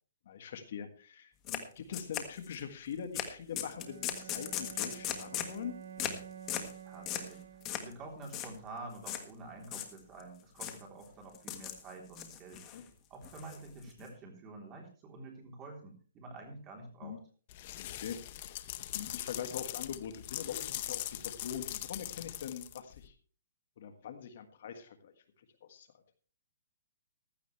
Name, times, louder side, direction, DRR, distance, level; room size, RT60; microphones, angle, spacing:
voice 1, 0.2-5.8 12.7-12.8 17.0-17.2 17.8-18.5 18.9-23.1 23.8-25.1 25.6-25.9, left 8 dB, 50° left, 7 dB, 1.5 m, -43 dB
sound 1, 1.5-1.6 1.9-2.6 3.1-3.3 3.6-5.6 6.0-6.2 6.5-6.7 7.1-7.3 7.7-7.9 8.2-8.5 9.1-9.2 9.6-10.2 10.6-10.8 11.3-11.8 12.1-12.8 13.2-14.0, left 10 dB, 20° left, 1.5 m, -38 dB
Bowed string instrument, 3.6-8.0, right 8 dB, 85° right, 1.6 m, -49 dB
voice 2, 6.8-12.6 13.1-17.2, right 3 dB, 20° right, 1 dB, 3.5 m, -48 dB
sound 2, 17.5-23.1, left 14 dB, 35° left, 0.7 m, -41 dB
15.5 x 12.5 x 3.3 m, 0.40 s
hypercardioid pair, 165°, 0 cm